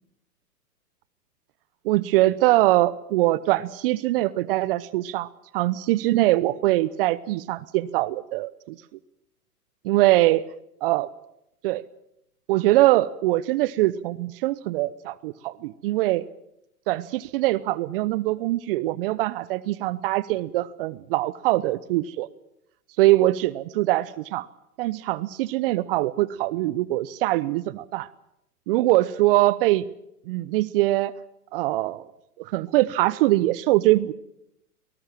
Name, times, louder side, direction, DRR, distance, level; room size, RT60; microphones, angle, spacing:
voice 1, 1.8-5.3 5.5-8.8 9.8-10.4 10.8-11.1 11.6-11.8 12.5-16.2 16.9-22.3 23.0-24.5 24.8-28.1 28.7-29.8 30.3-31.1 31.5-32.0 32.4-34.1, right 17 dB, 35° right, 17 dB, 0.8 m, -22 dB
24.5 x 19.0 x 7.5 m, 0.81 s
hypercardioid pair, 120°, 46 cm